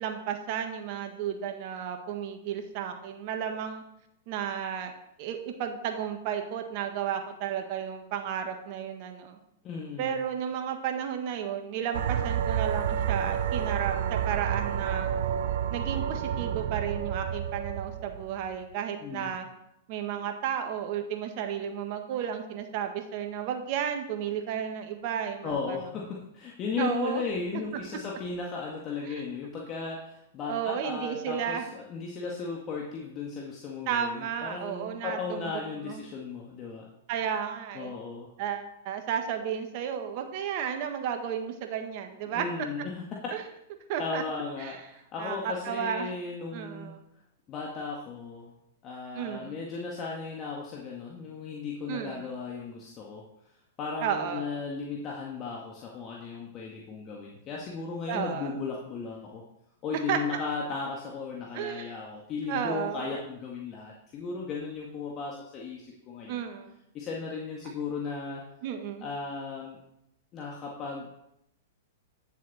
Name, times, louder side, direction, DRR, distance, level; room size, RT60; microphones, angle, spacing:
voice 1, 0.0-3.8 4.3-4.9 5.2-9.4 10.0-15.1 15.7-19.5 19.9-25.8 26.8-27.2 29.1-29.2 30.5-31.7 33.9-35.5 35.8-36.0 37.1-38.0 38.4-42.4 43.3-43.5 43.9-44.2 44.6-44.8 45.2-46.1 46.5-47.0 49.1-49.6 51.9-52.3 54.0-54.4 58.1-58.5 60.1-60.2 61.5-61.9 62.5-63.1 66.3-66.7 68.6-69.1, right 8 dB, 50° right, 5 dB, 1.5 m, -33 dB
voice 2, 9.6-10.2 19.0-19.4 25.4-36.9 37.7-38.3 42.3-43.1 44.0-46.9 47.5-48.5 48.8-53.2 53.8-59.4 59.8-66.4 66.9-68.4 69.0-69.8 70.3-71.1, left 5 dB, 35° left, -2 dB, 1.8 m, -36 dB
sound 1, 11.9-18.6, right 9 dB, 65° right, 0.6 m, -30 dB
9.8 x 7.3 x 4.2 m, 0.80 s
hypercardioid pair, 115°, 0 cm